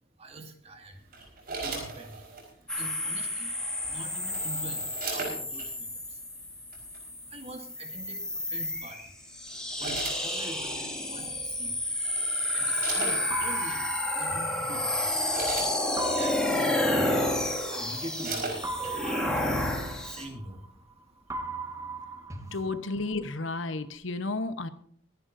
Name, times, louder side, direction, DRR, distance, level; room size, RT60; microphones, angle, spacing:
voice 1, 0.2-1.0 1.6-2.2 2.7-3.5 3.8-6.2 7.2-9.1 9.8-11.8 12.5-13.9 14.1-15.1 16.1-17.1 17.4-19.3 19.7-20.6, right 1 dB, 30° right, 4 dB, 2.1 m, -44 dB
sound 1, 1.1-2.5 3.8-5.7 6.7-7.0 8.6-8.9 9.5-10.8 11.6-11.7 12.0-13.5 14.3-14.4 14.9-16.4 17.0-17.1 17.4-19.0 19.4-19.5, right 3 dB, 50° right, 4.7 m, -38 dB
sound 2, 2.7-20.2, left 1 dB, 5° left, 2.2 m, -30 dB
sound 3, 13.3-15.4 16.0-18.0 18.6-20.9 21.3-23.4, right 3 dB, 15° right, 1.3 m, -39 dB
voice 2, 22.5-24.7, left 3 dB, 80° left, 11 dB, 1.1 m, -32 dB
23.5 x 10.5 x 2.7 m, 0.65 s
head